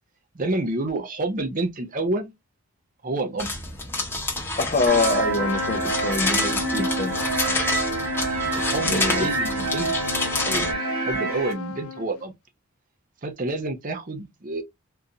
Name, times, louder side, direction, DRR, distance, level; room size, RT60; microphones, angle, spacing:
voice 1, 0.3-2.3 3.0-3.5 8.5-9.9 10.4-12.3 13.2-14.6, right 2 dB, 40° right, 0.7 m, -28 dB
sound 1, 3.4-10.7, left 3 dB, 10° left, 0.9 m, -28 dB
voice 2, 4.6-7.1 8.9-9.3, left 3 dB, 35° left, 0.5 m, -25 dB
sound 2, 4.9-11.5, right 3 dB, 85° right, 1.5 m, -27 dB
Trumpet, 5.3-12.3, left 7 dB, 85° left, 0.4 m, -35 dB
3.7 x 2.6 x 2.7 m
head